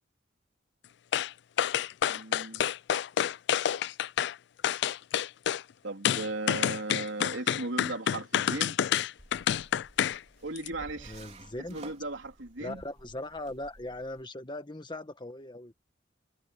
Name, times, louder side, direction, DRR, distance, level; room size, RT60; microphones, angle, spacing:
sound 1, 1.1-1.3 1.6-4.3 4.6-5.6 6.1-10.2 10.6-10.7, left 9 dB, 65° left, 0.3 m, -28 dB
voice 1, 2.1-2.6 5.8-8.8 10.4-11.2 11.6-12.8, right 2 dB, 85° right, 3.5 m, -37 dB
sound 2, 9.2-14.2, right 2 dB, 35° right, 3.7 m, -52 dB
voice 2, 11.0-11.9 12.6-15.7, left 1 dB, 25° left, 1.7 m, -39 dB
head